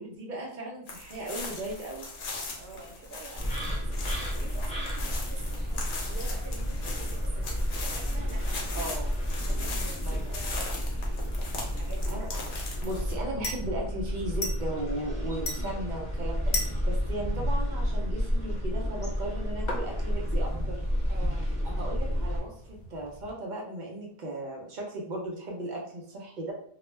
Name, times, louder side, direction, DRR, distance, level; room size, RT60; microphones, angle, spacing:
voice 1, 0.0-2.1 8.7-9.1 10.0-10.4 12.1-12.3 12.8-20.8 21.8-26.5, right 1 dB, 55° right, -2 dB, 0.7 m, -36 dB
sound 1, 0.9-13.1, left 3 dB, 85° left, 0.9 m, -40 dB
voice 2, 2.6-8.9 9.5-11.4 11.6-12.2 21.1-21.5, right 3 dB, 80° right, -1 dB, 1.0 m, -47 dB
sound 2, 3.3-22.4, equal, 10° left, 0.6 m, -31 dB
sound 3, 10.5-23.3, left 2 dB, 50° left, 0.6 m, -42 dB
2.3 x 2.0 x 3.1 m, 0.62 s
omnidirectional pair, 1.0 m